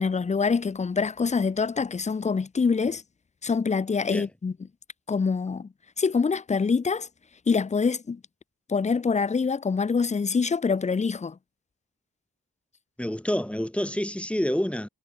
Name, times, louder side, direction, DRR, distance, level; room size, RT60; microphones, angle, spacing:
voice 1, 0.0-3.0 3.4-4.5 5.1-5.7 6.0-7.1 7.5-8.2 8.7-11.4, left 5 dB, 20° left, 0.4 m, -25 dB
voice 2, 13.0-14.9, equal, 5° left, 2.1 m, -28 dB
wide cardioid pair, 135°, 33 cm